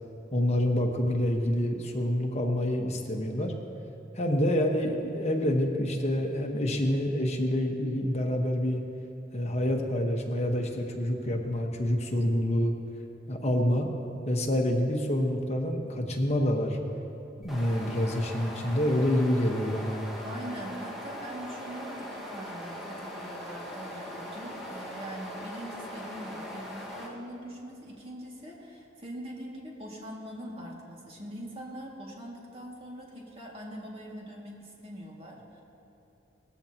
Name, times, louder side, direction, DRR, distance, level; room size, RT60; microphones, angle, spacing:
voice 1, 0.3-3.5 4.1-8.8 9.3-12.7 13.3-13.9 14.3-16.8 17.4-20.0, left 1 dB, 35° left, 1 dB, 1.3 m, -27 dB
sound 1, 17.4-27.1, equal, ahead, 1.8 m, -40 dB
voice 2, 20.2-35.6, right 1 dB, 30° right, -3 dB, 2.3 m, -42 dB
19.0 x 14.5 x 3.0 m, 2.9 s
head